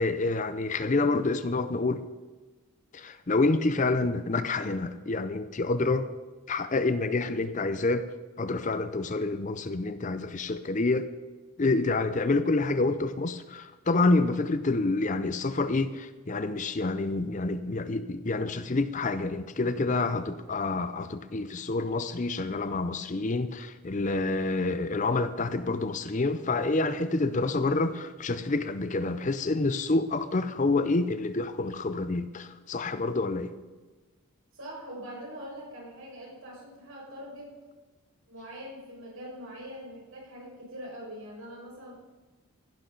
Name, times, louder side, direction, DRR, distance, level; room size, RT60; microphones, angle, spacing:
voice 1, 0.0-2.0 2.9-6.1 6.5-8.1 8.4-11.1 11.6-33.5, left 3 dB, 35° left, 0.5 m, -28 dB
voice 2, 34.5-37.5 38.3-41.9, equal, 65° right, 5.2 m, -43 dB
15.5 x 12.0 x 3.9 m
head